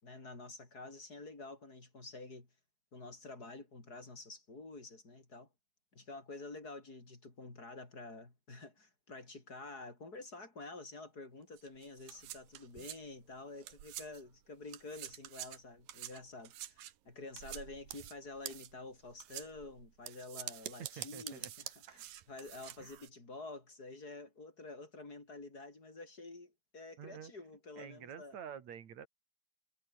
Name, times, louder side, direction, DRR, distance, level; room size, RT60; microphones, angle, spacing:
voice 1, 0.0-2.5 2.9-5.5 5.9-28.4, left 3 dB, 25° left, 5.1 m, -49 dB
sound 1, 11.6-14.4 14.7-23.1, right 13 dB, 85° right, 3.1 m, -48 dB
voice 2, 21.0-21.5 22.8-22.9 27.0-27.3 27.7-29.1, right 8 dB, 55° right, 3.3 m, -48 dB
omnidirectional pair, 3.9 m